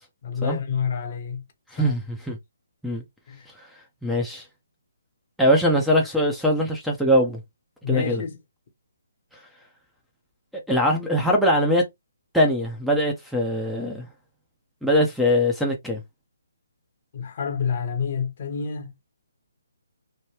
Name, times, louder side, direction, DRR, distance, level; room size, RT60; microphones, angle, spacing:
voice 1, 0.2-1.4 1.8-1.9 3.3-3.5 7.8-8.4 17.1-18.9, left 6 dB, 45° left, 0.9 m, -28 dB
voice 2, 1.7-2.4 2.8-3.0 3.6-3.7 4.0-4.5 5.4-7.4 7.9-8.2 10.5-11.8 12.3-14.1 14.8-16.0, equal, ahead, 0.6 m, -22 dB
3.2 x 2.2 x 2.8 m
hypercardioid pair, 150°, 0 cm